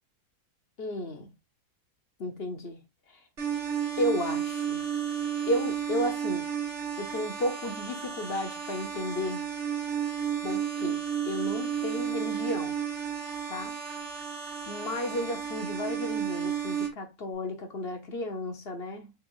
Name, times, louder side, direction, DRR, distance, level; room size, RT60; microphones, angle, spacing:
voice 1, 0.8-1.3 2.2-2.8 4.0-4.8 5.5-6.5 7.0-9.5 10.4-11.0 11.3-12.7 13.5-13.7 14.7-19.1, left 1 dB, 45° left, 1.0 m, -33 dB
sound 1, 3.4-16.9, right 8 dB, 45° right, 2.1 m, -32 dB
5.4 x 3.5 x 2.5 m
omnidirectional pair, 1.8 m